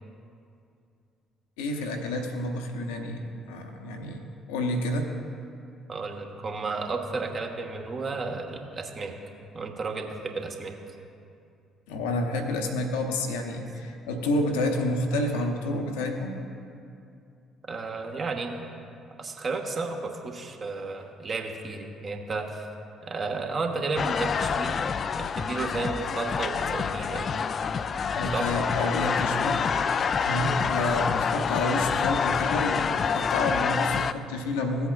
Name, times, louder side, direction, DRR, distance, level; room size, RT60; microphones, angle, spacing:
voice 1, 1.6-5.1 11.9-16.3 28.1-29.6 30.2-34.9, left 1 dB, 70° left, 4 dB, 0.8 m, -29 dB
voice 2, 5.9-9.2 9.5-10.7 17.7-18.6 19.2-22.7 23.0-24.7 25.2-27.3 28.3-28.5, right 3 dB, 40° right, 3 dB, 1.2 m, -32 dB
sound 1, 24.0-34.1, left 6 dB, 45° left, 0.3 m, -27 dB
16.0 x 8.0 x 2.3 m, 2.5 s
figure-of-eight pair, 45°, 0 cm